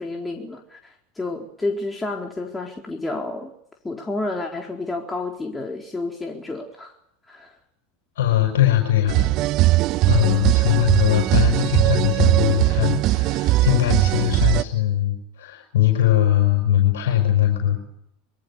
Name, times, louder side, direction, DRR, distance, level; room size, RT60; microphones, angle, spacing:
voice 1, 0.0-3.5 3.8-6.9 7.3-7.5, left 2 dB, 15° left, 1 dB, 4.0 m, -30 dB
voice 2, 8.2-9.3 10.1-18.0, left 13 dB, 75° left, 3 dB, 5.5 m, -20 dB
sound 1, 9.1-14.6, right 17 dB, 50° right, 1.3 m, -19 dB
25.0 x 24.0 x 7.1 m, 0.75 s
hypercardioid pair, 85°, 0 cm